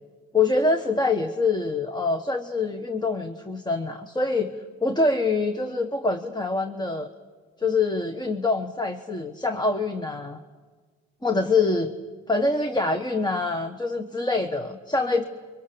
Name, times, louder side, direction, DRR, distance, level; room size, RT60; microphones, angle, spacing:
voice 1, 0.3-4.6 4.8-7.1 7.6-10.4 11.2-11.9 12.3-15.2, left 3 dB, 15° left, 7 dB, 1.3 m, -25 dB
29.0 x 24.0 x 7.0 m, 1.4 s
cardioid pair, 90°, 30 cm